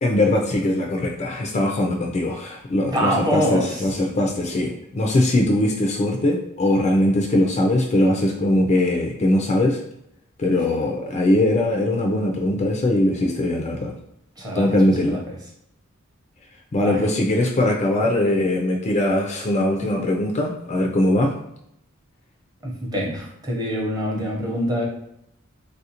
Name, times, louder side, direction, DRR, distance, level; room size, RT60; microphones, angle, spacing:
voice 1, 0.0-9.8 10.4-13.9 14.5-15.2 16.7-21.4, left 1 dB, 35° left, 1 dB, 0.4 m, -21 dB
voice 2, 2.9-3.8 14.4-14.7 15.1-15.4 16.8-17.0 22.6-24.8, equal, 20° right, -2 dB, 0.7 m, -24 dB
3.4 x 2.4 x 2.8 m, 0.76 s
head